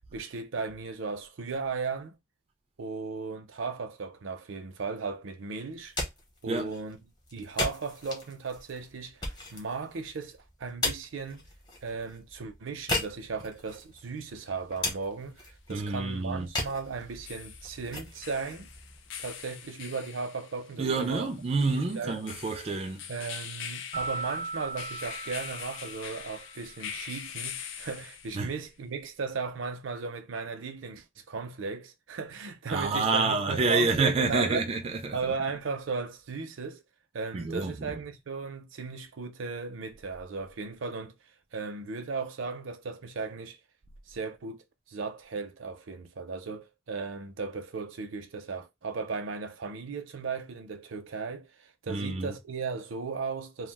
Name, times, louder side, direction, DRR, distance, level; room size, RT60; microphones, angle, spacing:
voice 1, 0.1-2.2 2.8-6.0 6.4-7.0 7.3-11.4 11.8-18.7 19.2-21.3 21.7-22.2 23.1-34.7 35.1-36.8 37.1-41.2 41.5-43.6 44.1-53.7, right 4 dB, 80° right, 0.5 m, -36 dB
sound 1, 5.7-19.6, left 2 dB, 20° left, 0.8 m, -38 dB
sound 2, 14.4-14.5 17.0-28.6, left 8 dB, 75° left, 0.4 m, -43 dB
voice 2, 15.7-16.5 20.8-23.0 28.3-28.6 32.7-35.3 37.3-38.0 51.9-52.4, right 3 dB, 30° right, 0.3 m, -28 dB
sound 3, 23.9-26.7, right 3 dB, 50° left, 0.8 m, -38 dB
2.3 x 2.2 x 3.3 m
head